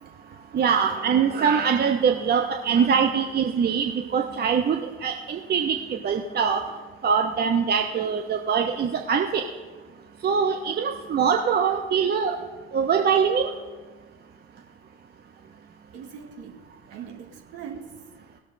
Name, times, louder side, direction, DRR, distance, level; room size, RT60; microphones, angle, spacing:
voice 1, 0.5-6.6 7.0-9.4 10.2-12.4 12.7-13.5, right 6 dB, 35° right, 4 dB, 0.8 m, -23 dB
voice 2, 15.9-16.6 16.9-18.2, right 7 dB, 55° right, 3 dB, 1.7 m, -41 dB
18.5 x 6.8 x 3.9 m, 1.3 s
figure-of-eight pair, 60°, 30 cm